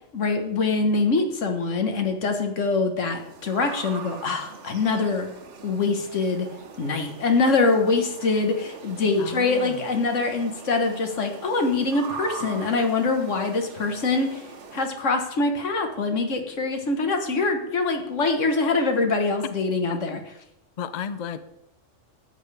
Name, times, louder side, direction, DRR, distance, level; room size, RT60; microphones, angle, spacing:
voice 1, 0.1-5.3 5.6-6.5 6.8-14.4 14.7-20.2, left 3 dB, 70° left, 5 dB, 1.6 m, -24 dB
sound 1, 3.1-14.9, right 5 dB, 65° right, 1.2 m, -42 dB
voice 2, 9.2-9.9 19.9-20.0 20.8-21.4, left 7 dB, 55° left, 13 dB, 0.4 m, -33 dB
12.5 x 8.8 x 3.4 m, 0.83 s
omnidirectional pair, 1.3 m